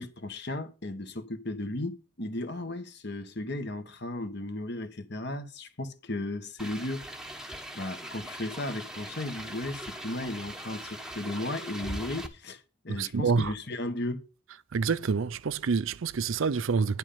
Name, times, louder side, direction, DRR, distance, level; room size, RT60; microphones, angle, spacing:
voice 1, 0.0-7.3 7.7-14.2, left 2 dB, 50° left, 1.4 m, -35 dB
sound 1, 6.6-12.3, right 1 dB, 5° right, 1.0 m, -41 dB
voice 2, 12.9-13.5 14.7-17.0, right 5 dB, 70° right, 0.5 m, -27 dB
10.5 x 7.7 x 5.7 m
head